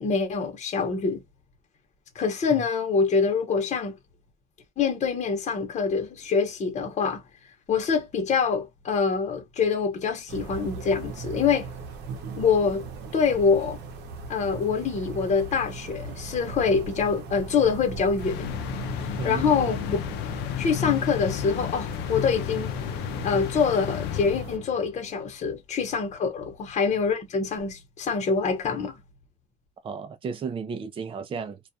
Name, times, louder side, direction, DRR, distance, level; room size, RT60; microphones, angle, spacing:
voice 1, 0.0-1.2 2.1-4.0 4.8-7.2 7.7-11.7 12.4-12.9 13.1-13.8 14.3-18.6 19.2-20.0 20.6-22.7 23.2-29.0, left 5 dB, 40° left, 0.9 m, -25 dB
sound 1, 10.3-24.6, right 3 dB, 80° right, 0.8 m, -38 dB
sound 2, 18.2-24.9, left 12 dB, 85° left, 0.4 m, -33 dB
voice 2, 19.2-19.9 29.8-31.6, right 5 dB, 30° right, 0.5 m, -34 dB
2.3 x 2.3 x 2.6 m
cardioid pair, 110°, 17 cm